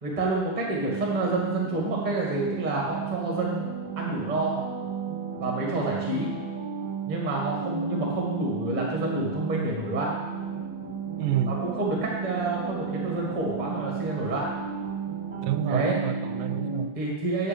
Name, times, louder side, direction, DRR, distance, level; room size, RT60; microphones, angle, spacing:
voice 1, 0.0-3.7 3.9-4.6 5.4-6.3 7.1-10.1 11.5-14.5 15.7-16.0 16.9-17.5, right 2 dB, 20° right, -2 dB, 1.3 m, -28 dB
sound 1, 0.7-16.8, right 6 dB, 50° right, 1.5 m, -33 dB
sound 2, 3.0-3.4 9.5-15.6, left 9 dB, 75° left, 2.5 m, -47 dB
voice 2, 10.5-11.5 15.4-16.9, right 10 dB, 90° right, 10 dB, 2.2 m, -30 dB
8.7 x 6.4 x 5.2 m, 1.1 s
omnidirectional pair, 3.8 m